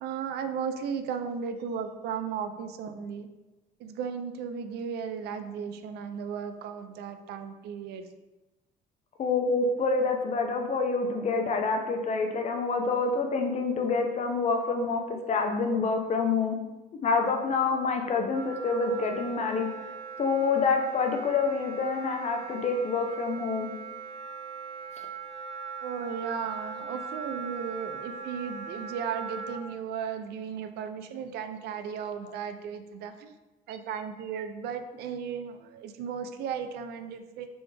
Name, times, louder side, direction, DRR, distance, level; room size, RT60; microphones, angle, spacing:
voice 1, 0.0-3.3 3.8-8.1 25.8-33.3 33.7-37.5, right 7 dB, 75° right, 8 dB, 0.4 m, -35 dB
voice 2, 9.2-16.6 17.0-19.7 20.2-23.7, left 4 dB, 45° left, 4 dB, 0.6 m, -27 dB
Wind instrument woodwind instrument, 18.3-29.6, right 5 dB, 35° right, 1.1 m, -40 dB
4.1 x 3.4 x 3.2 m, 1.1 s
cardioid pair, 110°, 17 cm